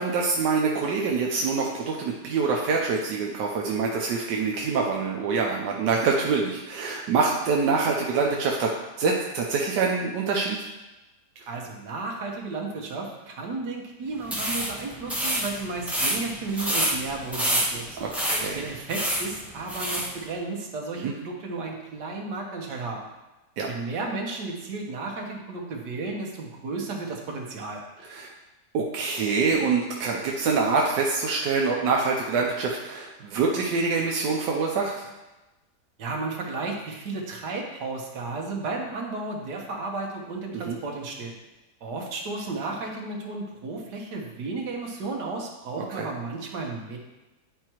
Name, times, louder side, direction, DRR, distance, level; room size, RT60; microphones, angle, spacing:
voice 1, 0.0-10.6 18.0-18.7 21.0-21.1 23.6-23.7 28.1-28.3 28.7-35.1 40.6-40.8 45.8-46.1, right 4 dB, 90° right, -1 dB, 1.4 m, -25 dB
voice 2, 11.5-17.8 18.5-23.0 23.7-27.8 36.0-41.4 41.8-47.0, right 3 dB, 75° right, 0 dB, 1.7 m, -33 dB
sound 1, 14.2-20.1, equal, ahead, 0.8 m, -28 dB
10.0 x 4.6 x 3.0 m, 1.1 s
omnidirectional pair, 1.8 m